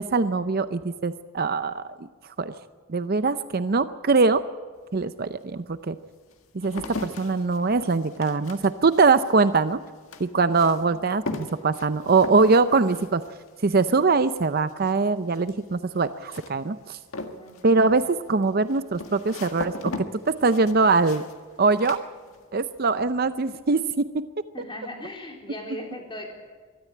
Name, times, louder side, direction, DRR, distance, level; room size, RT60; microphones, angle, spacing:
voice 1, 0.0-1.8 2.4-2.5 2.9-4.4 4.9-6.0 6.5-9.8 10.2-13.2 13.6-17.0 17.6-19.9 20.4-21.2 21.6-22.0 22.5-24.1, right 4 dB, 50° right, 12 dB, 0.6 m, -22 dB
sound 1, 4.8-4.9 5.6-22.8 23.0-23.6, left 2 dB, 90° left, 1.8 m, -39 dB
voice 2, 17.4-17.9 24.5-26.3, left 1 dB, 25° left, 0 dB, 3.8 m, -39 dB
23.0 x 13.5 x 8.6 m, 1.4 s
head